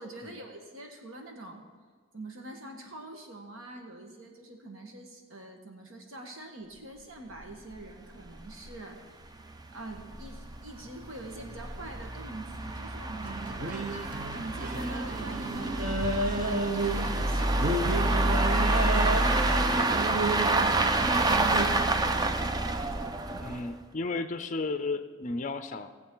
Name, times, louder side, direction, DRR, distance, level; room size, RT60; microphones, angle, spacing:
voice 1, 0.0-1.6 2.1-9.0 9.7-13.8 14.3-16.5 16.9-18.3 18.5-22.6, right 1 dB, 75° right, 2 dB, 1.6 m, -45 dB
sound 1, 7.4-7.5 7.7-7.8 8.3-8.4 8.7-8.8 9.4-23.8, right 2 dB, 20° right, 0.4 m, -28 dB
sound 2, 13.2-21.7, right 2 dB, 40° right, 0.8 m, -32 dB
voice 2, 23.4-25.9, left 3 dB, 35° left, 9 dB, 0.5 m, -33 dB
18.0 x 7.6 x 3.8 m, 1.5 s
head